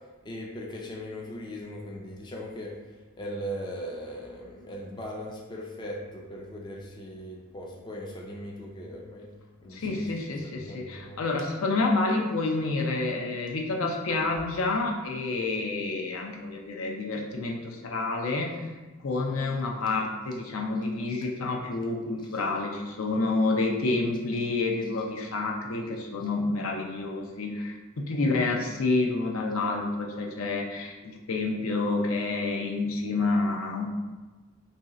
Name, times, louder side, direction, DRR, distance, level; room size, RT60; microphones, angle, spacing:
voice 1, 0.2-2.7 3.2-9.3 9.6-10.0 10.4-11.2 19.3-19.5 28.2-28.3, equal, 20° left, -1 dB, 0.3 m, -39 dB
voice 2, 9.7-18.6 19.0-33.9, left 3 dB, 75° left, 0 dB, 0.5 m, -29 dB
3.1 x 2.7 x 3.7 m, 1.2 s
head